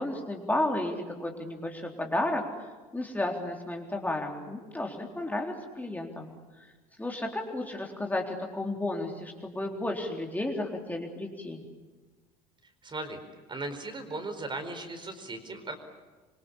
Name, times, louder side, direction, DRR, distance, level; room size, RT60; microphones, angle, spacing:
voice 1, 0.0-2.5 2.9-6.3 6.6-6.7 7.0-11.6, left 1 dB, 10° left, 1 dB, 3.8 m, -32 dB
voice 2, 12.8-13.2 13.5-15.8, right 2 dB, 25° right, 8 dB, 4.6 m, -37 dB
26.5 x 24.5 x 8.6 m, 1.3 s
figure-of-eight pair, 65°, 19 cm